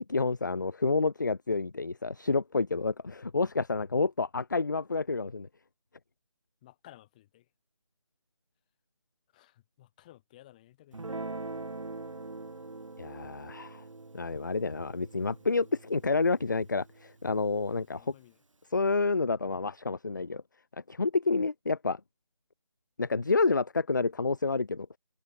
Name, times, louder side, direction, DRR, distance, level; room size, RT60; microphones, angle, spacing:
voice 1, 0.1-5.5 13.0-13.8 14.1-18.1 18.7-20.4 20.9-22.0 23.0-24.9, left 3 dB, 35° left, 0.4 m, -29 dB
voice 2, 6.6-7.5 9.3-11.0 17.8-18.4, left 15 dB, 15° left, 2.7 m, -56 dB
Guitar, 10.9-17.5, right 3 dB, 70° right, 4.4 m, -43 dB
figure-of-eight pair, 170°, 17 cm